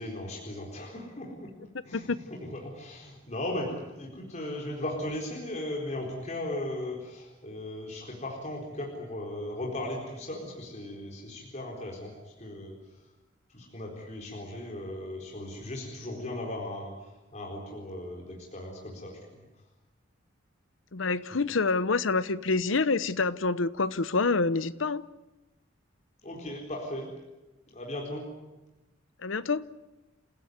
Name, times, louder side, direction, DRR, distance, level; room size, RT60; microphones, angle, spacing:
voice 1, 0.0-1.5 1.8-13.0 13.5-19.4 26.2-27.1 27.7-28.3, left 1 dB, 35° left, 4.3 m, -37 dB
voice 2, 20.9-25.1 29.2-29.7, left 3 dB, 70° left, 0.9 m, -27 dB
29.0 x 16.0 x 9.6 m
head